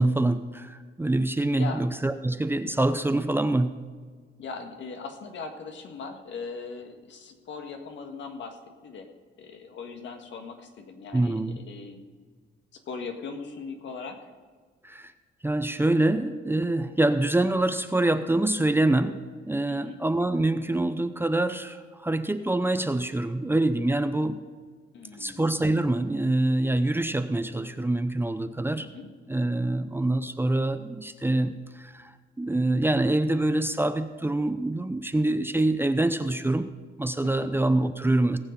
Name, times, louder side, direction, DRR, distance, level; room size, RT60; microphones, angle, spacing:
voice 1, 0.0-3.8 11.1-11.6 14.8-15.1 15.4-24.4 25.2-28.9 29.3-32.1 32.4-36.7 37.0-38.4, right 2 dB, 10° right, 9 dB, 0.6 m, -25 dB
voice 2, 4.4-9.1 9.4-12.0 12.7-14.3 19.7-20.0 24.9-25.5 28.8-29.1 37.2-37.5, left 4 dB, 65° left, 4 dB, 1.7 m, -39 dB
18.0 x 7.1 x 5.3 m, 1.5 s
cardioid pair, 90°, 20 cm